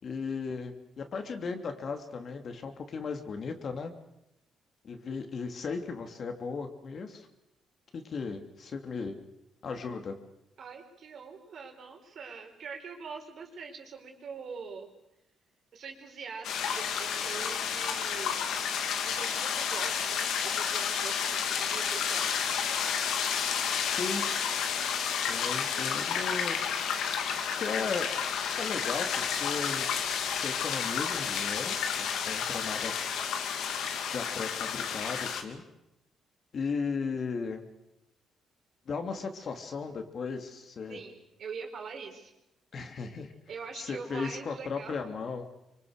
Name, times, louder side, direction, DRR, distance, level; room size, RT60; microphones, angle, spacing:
voice 1, 0.0-3.9 4.8-7.3 7.9-9.1 9.6-10.1 23.9-24.2 25.3-26.6 27.6-28.1 28.6-29.9 30.3-32.9 34.0-35.6 36.5-37.6 38.9-41.0 42.7-43.3 43.7-45.5, left 5 dB, 50° left, 5 dB, 2.9 m, -36 dB
voice 2, 10.6-14.9 15.7-18.4 19.0-22.5 40.9-42.3 43.5-45.0, right 5 dB, 60° right, 3 dB, 4.6 m, -43 dB
sound 1, 16.4-35.4, left 7 dB, 80° left, 2.4 m, -31 dB
25.0 x 24.0 x 6.6 m, 0.90 s
cardioid pair, 90°, 0 cm